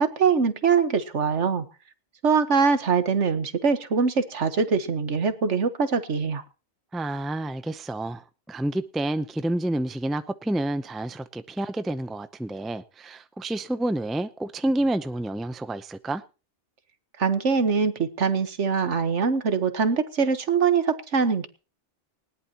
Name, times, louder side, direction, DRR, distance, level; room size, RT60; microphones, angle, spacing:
voice 1, 0.0-1.6 2.2-6.4 17.2-21.5, right 5 dB, 80° right, 1.7 m, -23 dB
voice 2, 6.9-16.2, right 1 dB, ahead, 0.5 m, -29 dB
20.0 x 17.5 x 3.0 m
omnidirectional pair, 1.2 m